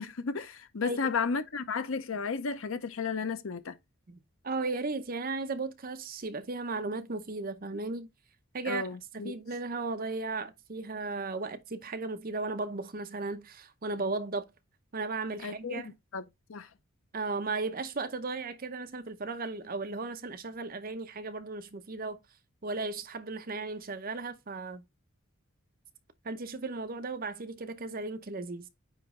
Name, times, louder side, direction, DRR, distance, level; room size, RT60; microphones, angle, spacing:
voice 1, 0.0-3.8 8.6-9.4 15.4-16.2 16.5-16.7, left 5 dB, 70° left, 0.6 m, -33 dB
voice 2, 0.8-1.1 4.1-4.2 4.4-8.1 8.5-8.9 9.2-14.4 14.9-15.9 17.1-22.2 22.6-24.8 26.2-28.7, right 3 dB, 45° right, 0.7 m, -35 dB
9.0 x 3.1 x 3.7 m
head